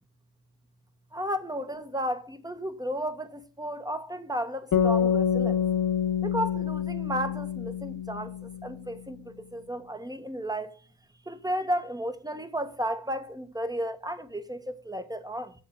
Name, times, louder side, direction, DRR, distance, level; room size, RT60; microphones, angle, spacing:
voice 1, 1.1-5.6 6.2-10.8 11.3-15.5, equal, 10° right, 1.4 m, -33 dB
sound 1, 4.7-8.9, left 8 dB, 55° left, 1.5 m, -27 dB
7.3 x 7.3 x 7.5 m
cardioid pair, 70°, 39 cm